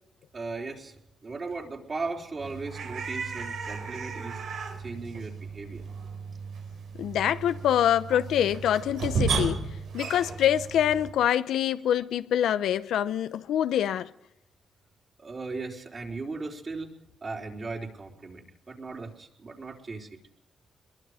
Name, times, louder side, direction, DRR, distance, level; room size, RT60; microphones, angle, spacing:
voice 1, 0.3-1.0 1.2-4.4 4.8-5.8 15.2-20.2, right 3 dB, 35° right, 3.9 m, -37 dB
sound 1, 2.4-11.1, right 5 dB, 80° right, 4.7 m, -34 dB
voice 2, 7.0-9.6 9.9-14.1, left 10 dB, 90° left, 0.8 m, -25 dB
23.5 x 22.0 x 5.1 m
cardioid pair, 115°, 0 cm